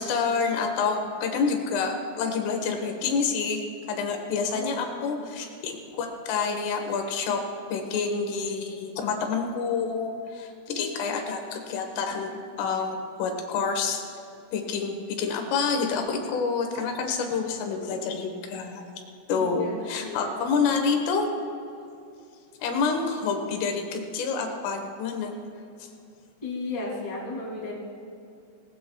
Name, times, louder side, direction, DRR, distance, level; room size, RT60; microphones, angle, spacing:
voice 1, 0.0-3.6 3.9-7.4 7.7-14.0 14.5-18.8 19.3-21.3 22.6-25.3 25.8-25.9, left 5 dB, 75° left, 4 dB, 3.6 m, -28 dB
voice 2, 4.5-5.2 10.7-11.2 19.3-20.3 26.4-27.7, left 2 dB, 20° left, -5 dB, 1.0 m, -36 dB
19.0 x 18.5 x 2.3 m, 2.6 s
omnidirectional pair, 6.0 m